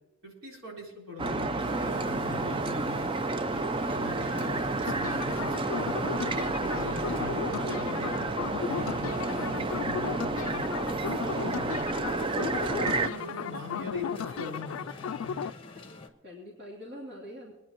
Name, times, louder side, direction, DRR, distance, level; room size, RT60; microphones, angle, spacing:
voice 1, 0.2-3.1 3.5-6.3 6.7-8.3 8.7-12.1 12.5-15.4, left 3 dB, 75° right, -2 dB, 3.9 m, -41 dB
sound 1, 1.2-13.1, right 3 dB, 25° right, 0.4 m, -30 dB
sound 2, 1.6-16.1, left 2 dB, 25° left, 1.2 m, -46 dB
sound 3, 4.9-15.5, left 7 dB, 80° left, 0.3 m, -36 dB
voice 2, 16.2-17.5, left 1 dB, 50° right, -4 dB, 2.8 m, -46 dB
23.0 x 10.0 x 3.0 m, 1.1 s
head